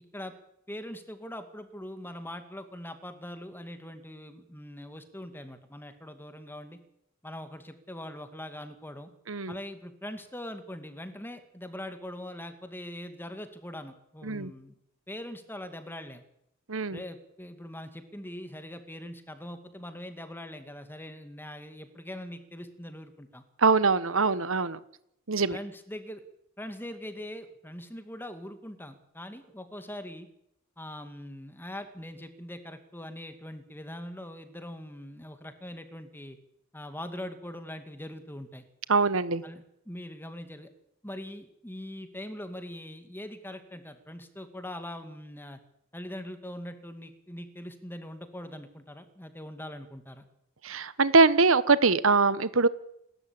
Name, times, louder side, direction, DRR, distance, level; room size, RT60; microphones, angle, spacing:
voice 1, 0.7-6.8 7.2-9.1 9.5-14.7 15.1-16.2 16.9-23.4 25.5-26.2 26.6-30.3 30.8-36.4 36.7-38.6 39.4-40.7 41.0-45.6 45.9-50.2, left 1 dB, 10° left, 8 dB, 2.3 m, -42 dB
voice 2, 16.7-17.0 23.6-24.8 25.3-25.6 38.9-39.4 50.6-52.7, right 4 dB, 75° right, 16 dB, 1.2 m, -23 dB
29.5 x 13.0 x 8.8 m, 0.76 s
head